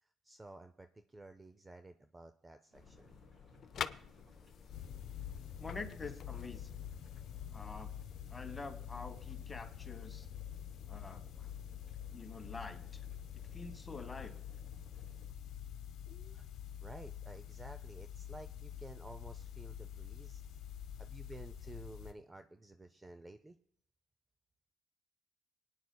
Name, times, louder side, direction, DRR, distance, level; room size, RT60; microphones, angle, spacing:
voice 1, 0.0-3.1 16.3-16.4 16.8-20.4 21.0-23.6, right 2 dB, 15° right, 9 dB, 0.4 m, -53 dB
sound 1, 2.7-7.8, left 8 dB, 55° left, 0.4 m, -48 dB
sound 2, 2.7-15.3, right 1 dB, 50° right, 4.9 m, -65 dB
sound 3, 4.7-22.1, left 9 dB, 90° left, 0.9 m, -47 dB
voice 2, 5.6-6.7 7.5-7.9 8.3-10.3 10.9-11.5 12.1-13.0 13.5-14.3, left 3 dB, 20° left, 5 dB, 1.2 m, -47 dB
26.0 x 9.4 x 2.2 m, 0.68 s
cardioid pair, 130°, 0 cm